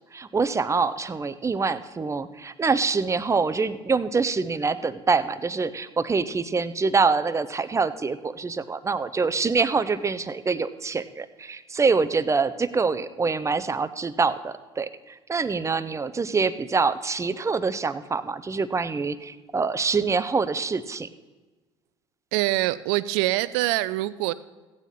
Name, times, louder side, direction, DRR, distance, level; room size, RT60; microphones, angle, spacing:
voice 1, 0.1-21.1, right 4 dB, 20° right, 13 dB, 0.7 m, -25 dB
voice 2, 22.3-24.3, right 17 dB, 70° right, 16 dB, 0.5 m, -24 dB
15.0 x 9.1 x 4.2 m, 1.3 s
hypercardioid pair, 70°, 14 cm